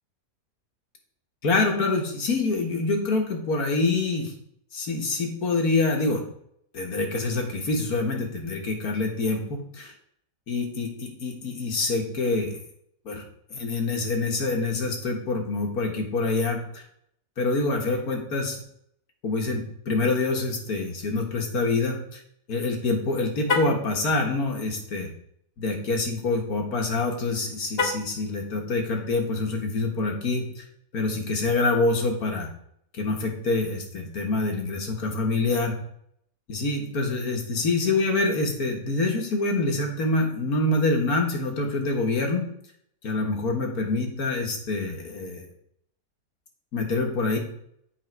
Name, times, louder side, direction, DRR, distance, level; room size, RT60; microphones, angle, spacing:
voice 1, 1.4-4.3 4.7-6.2 6.7-9.9 10.5-12.6 13.1-13.2 13.5-16.8 17.4-18.6 19.2-22.2 22.5-25.1 25.6-30.6 30.9-32.5 32.9-35.8 36.5-42.5 43.0-45.4 46.7-47.4, left 3 dB, 75° left, 2 dB, 1.9 m, -26 dB
Car, 23.4-23.9 27.7-28.2, left 4 dB, 45° left, 1.1 m, -27 dB
8.1 x 5.0 x 4.7 m, 0.70 s
omnidirectional pair, 1.6 m